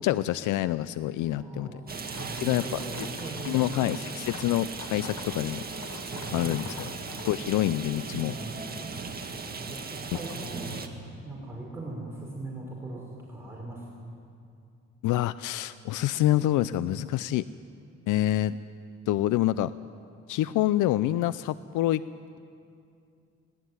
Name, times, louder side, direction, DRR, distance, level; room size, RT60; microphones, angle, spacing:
voice 1, 0.0-1.7 2.3-2.6 2.9-3.1 3.4-5.6 6.3-6.9 7.3-8.3 15.0-17.4 18.1-18.6 19.1-19.7 20.3-22.0, left 14 dB, 85° left, 16 dB, 0.5 m, -26 dB
voice 2, 1.3-1.7 2.2-3.8 6.4-6.7 8.0-8.8 9.5-10.8 11.2-13.0 13.3-14.1, right 2 dB, 10° right, -4 dB, 5.6 m, -40 dB
Rain, 1.9-10.9, right 4 dB, 30° right, 2.1 m, -37 dB
sound 1, 2.0-7.4, left 7 dB, 60° left, 1.4 m, -47 dB
19.5 x 19.5 x 9.6 m, 2.4 s
cardioid pair, 90°, 30 cm